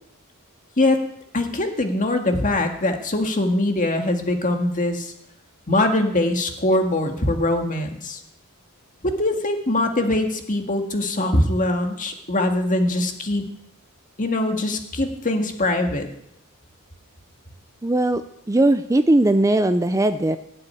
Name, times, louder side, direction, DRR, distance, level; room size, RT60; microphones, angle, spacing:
voice 1, 1.3-5.1 5.7-8.2 9.0-13.5 14.2-16.1, left 1 dB, 35° left, 4 dB, 1.9 m, -22 dB
voice 2, 17.8-18.2 18.5-20.4, right 1 dB, 15° right, 10 dB, 0.5 m, -18 dB
17.5 x 6.8 x 9.8 m, 0.75 s
head